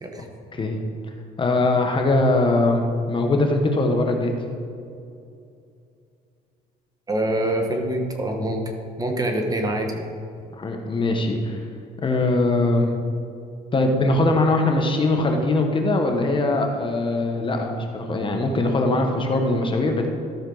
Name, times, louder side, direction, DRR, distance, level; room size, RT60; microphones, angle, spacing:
voice 1, 1.4-2.8 3.1-4.3 10.6-11.6 12.0-12.9 13.7-20.1, left 2 dB, 30° left, 3 dB, 1.1 m, -21 dB
voice 2, 7.1-8.6 9.0-10.0, right 1 dB, 20° right, 3 dB, 1.2 m, -25 dB
13.5 x 6.3 x 3.9 m, 2.5 s
cardioid pair, 110°, 17 cm